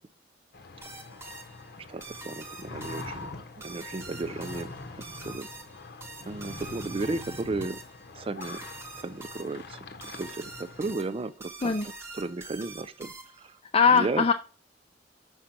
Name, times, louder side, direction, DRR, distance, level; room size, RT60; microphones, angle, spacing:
sound 1, 0.5-10.9, left 3 dB, 60° left, 1.0 m, -44 dB
sound 2, 0.8-13.6, right 3 dB, 15° right, 1.2 m, -45 dB
voice 1, 1.9-3.3 3.6-4.7 5.2-5.5 6.2-7.8 8.1-8.6 9.0-9.8 10.2-11.8 12.1-13.6 13.9-14.3, right 3 dB, 30° right, 0.4 m, -34 dB
voice 2, 13.7-14.3, left 5 dB, 30° left, 0.5 m, -21 dB
6.3 x 4.7 x 5.9 m
head